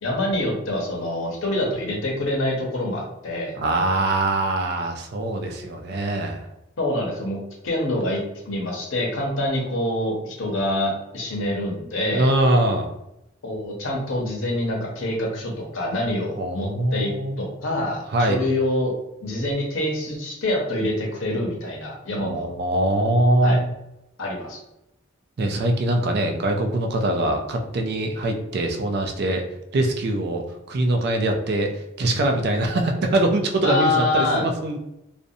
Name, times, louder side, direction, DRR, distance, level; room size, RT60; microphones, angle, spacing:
voice 1, 0.0-3.6 6.8-7.4 7.6-8.2 8.5-12.3 13.4-17.1 17.4-18.9 19.2-22.4 23.4-23.6 24.2-24.6 33.6-34.5, left 1 dB, 85° left, -1 dB, 0.8 m, -26 dB
voice 2, 3.6-6.4 12.1-12.9 16.4-17.4 18.1-18.4 22.2-23.7 25.4-29.4 29.7-30.4 30.7-31.7 32.0-34.8, right 1 dB, 55° right, 4 dB, 0.4 m, -22 dB
2.5 x 2.1 x 2.6 m, 0.87 s
head